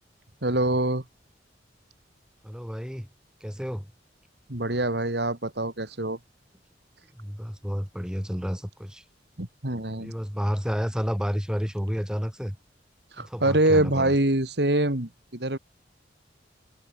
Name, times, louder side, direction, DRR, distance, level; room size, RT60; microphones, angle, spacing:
voice 1, 0.4-1.0 4.5-6.2 9.4-10.1 13.1-15.6, right 1 dB, 65° right, 3.0 m, -25 dB
voice 2, 2.4-3.1 3.4-3.9 7.1-9.0 9.9-12.6 13.2-14.1, equal, 5° right, 3.9 m, -30 dB
head